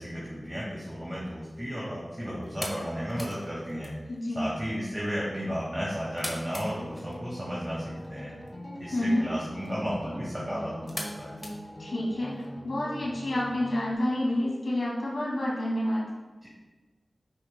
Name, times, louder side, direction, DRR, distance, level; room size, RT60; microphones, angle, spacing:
voice 1, 0.0-3.9 4.3-8.3 8.8-11.3 16.4-16.5, equal, 20° right, -6 dB, 1.8 m, -34 dB
sound 1, 1.1-12.4, equal, 15° left, 1.5 m, -45 dB
voice 2, 4.1-4.5 8.9-9.2 11.8-16.0, left 1 dB, 75° left, -5 dB, 2.2 m, -29 dB
sound 2, 6.6-13.9, equal, 35° left, 1.7 m, -42 dB
8.9 x 6.0 x 2.2 m, 1.2 s
cardioid pair, 45°, 0 cm